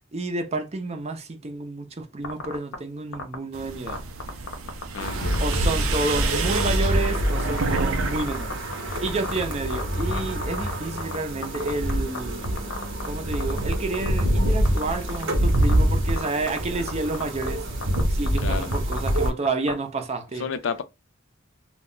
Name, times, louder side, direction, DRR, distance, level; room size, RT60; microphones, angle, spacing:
voice 1, 0.1-4.0 5.4-8.6 9.0-12.5 13.0-17.6 18.1-20.5, right 3 dB, 30° right, 0.6 m, -30 dB
sound 1, 2.2-2.7 3.1-3.3 3.9-5.1 5.3-5.5 5.9-6.2 6.6-6.7 7.0-7.8 8.2-11.2 11.4-12.2 12.4-13.1 13.3-14.2 14.6-15.2 15.5-15.7 16.1-16.6 16.9-17.0 17.1-17.5 17.8-18.0 18.3-19.7, left 4 dB, 85° left, 0.8 m, -32 dB
sound 2, 3.5-8.2 8.5-9.1, right 5 dB, 85° right, 0.5 m, -30 dB
voice 2, 4.9-5.6 18.4-18.8 20.3-20.8, left 5 dB, 65° left, 0.4 m, -31 dB
sound 3, 5.0-19.3, equal, 60° right, 0.8 m, -25 dB
2.3 x 2.1 x 3.7 m
head